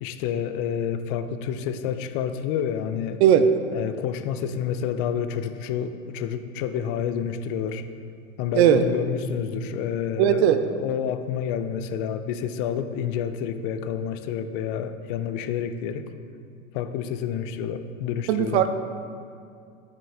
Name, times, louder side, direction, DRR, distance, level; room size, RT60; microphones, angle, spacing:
voice 1, 0.0-3.2 3.7-7.8 8.4-10.4 10.8-16.0 16.7-18.7, left 8 dB, 40° left, 10 dB, 0.5 m, -29 dB
voice 2, 3.2-3.5 8.5-8.8 10.2-10.6 18.3-18.7, right 10 dB, 55° right, 10 dB, 0.5 m, -17 dB
9.5 x 5.3 x 3.4 m, 2.4 s
figure-of-eight pair, 85°, 41 cm